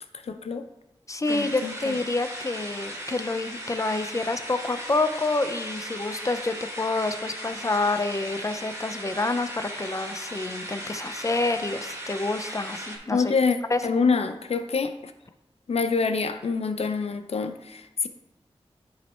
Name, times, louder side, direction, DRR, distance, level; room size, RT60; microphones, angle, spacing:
voice 1, 0.3-0.7 1.3-1.9 13.1-13.6 13.8-15.1 15.7-18.1, left 5 dB, 75° left, 9 dB, 0.5 m, -26 dB
voice 2, 1.1-13.3 13.7-13.8, left 2 dB, 30° left, 9 dB, 0.6 m, -28 dB
sound 1, 1.2-13.0, equal, 25° right, 1.9 m, -37 dB
9.5 x 3.2 x 4.3 m, 0.97 s
cardioid pair, 50°, 11 cm